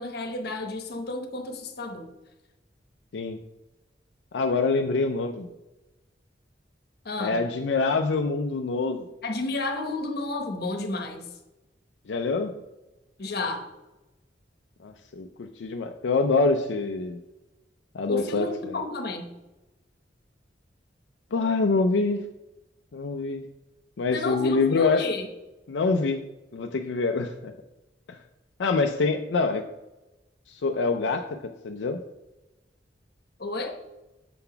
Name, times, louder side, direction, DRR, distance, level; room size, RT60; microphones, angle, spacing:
voice 1, 0.0-2.1 7.0-7.4 9.2-11.3 13.2-13.7 18.1-19.4 24.1-25.3 33.4-33.8, left 2 dB, 60° left, 5 dB, 1.0 m, -31 dB
voice 2, 4.3-5.5 7.2-9.1 12.1-12.5 14.8-17.2 17.9-18.8 21.3-22.3 22.9-23.4 24.0-25.1 25.7-26.3 26.5-27.5 28.1-28.2 28.6-29.6 30.5-31.4 31.6-32.0, left 3 dB, 85° left, 4 dB, 0.4 m, -25 dB
6.8 x 3.9 x 5.6 m, 1.0 s
head